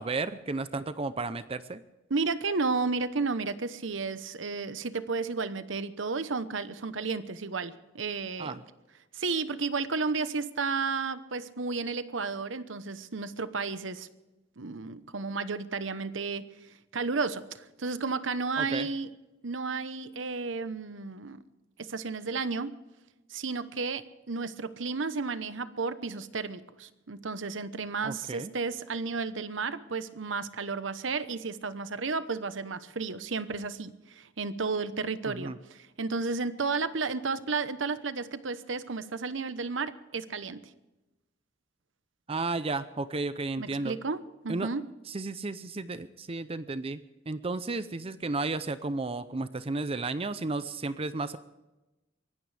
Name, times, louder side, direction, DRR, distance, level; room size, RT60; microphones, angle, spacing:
voice 1, 0.0-1.8 8.4-8.6 18.6-18.9 28.0-28.5 35.3-35.6 42.3-44.0 44.5-44.7 45.1-47.0 47.3-51.4, right 3 dB, 30° right, 13 dB, 0.6 m, -33 dB
voice 2, 2.1-8.6 9.1-14.1 14.6-16.5 16.9-19.1 19.4-21.4 21.8-22.8 23.3-40.6 43.6-44.9, right 4 dB, 85° right, 13 dB, 1.0 m, -32 dB
23.5 x 17.0 x 3.4 m, 1.0 s
head